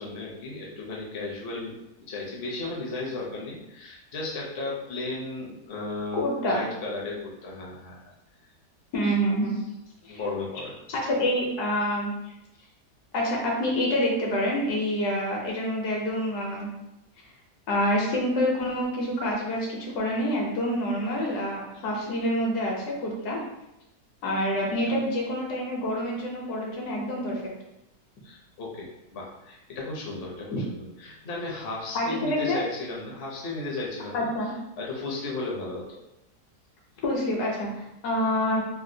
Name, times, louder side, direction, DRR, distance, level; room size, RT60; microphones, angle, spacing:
voice 1, 0.0-1.8 2.1-8.0 10.1-10.7 24.9-25.0 28.2-36.0, left 2 dB, 50° left, -3 dB, 0.7 m, -35 dB
voice 2, 6.1-6.6 8.9-9.5 10.0-10.2 10.9-12.1 13.1-16.7 17.7-23.4 24.2-27.5 30.5-30.6 31.9-32.6 34.1-34.5 37.0-38.6, equal, 70° left, -2 dB, 1.3 m, -27 dB
3.5 x 2.2 x 2.6 m, 0.88 s
omnidirectional pair, 1.8 m